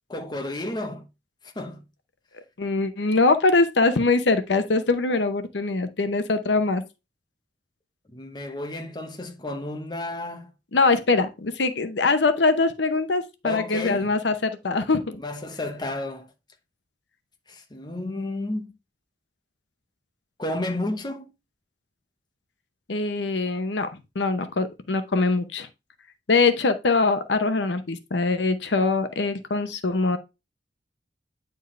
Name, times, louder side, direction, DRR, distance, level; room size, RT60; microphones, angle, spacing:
voice 1, 0.1-1.1 1.4-1.8 8.1-10.5 13.4-14.1 15.2-16.3 17.5-18.7 20.4-21.3, left 2 dB, 25° left, 1.0 m, -32 dB
voice 2, 2.6-6.8 10.7-15.2 22.9-25.7 26.3-30.2, left 3 dB, 80° left, 0.8 m, -23 dB
9.3 x 4.5 x 3.2 m
head